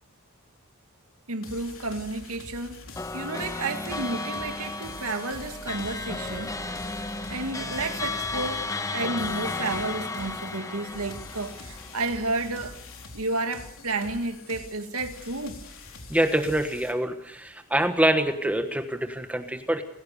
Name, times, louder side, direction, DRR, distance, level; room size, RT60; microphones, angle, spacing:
voice 1, 1.3-2.8 3.1-6.5 7.3-12.8 13.1-15.6, right 2 dB, 75° right, 2.3 m, -31 dB
sound 1, 1.4-16.9, left 3 dB, 60° left, 4.0 m, -45 dB
sound 2, 3.0-12.6, left 3 dB, 15° left, 1.3 m, -34 dB
voice 2, 16.1-19.8, right 1 dB, 5° right, 1.3 m, -25 dB
28.0 x 16.5 x 6.8 m
head